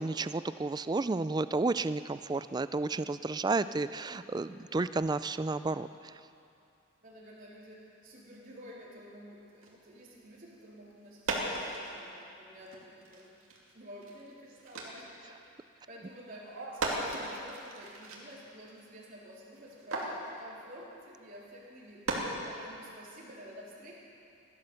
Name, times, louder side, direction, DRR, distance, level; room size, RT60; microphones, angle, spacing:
voice 1, 0.0-5.9, right 3 dB, 20° right, 14 dB, 0.3 m, -31 dB
voice 2, 7.0-13.3 13.7-15.1 15.9-16.6 16.8-23.9, equal, 45° right, -6 dB, 3.8 m, -50 dB
sound 1, 9.6-9.7 10.6-10.7 11.0-12.2 12.5-15.5 15.8-15.9 16.1-18.9 19.3-20.7 21.6-21.7 22.0-22.9, right 2 dB, 85° right, 2.6 m, -38 dB
17.0 x 12.0 x 7.0 m, 2.6 s
head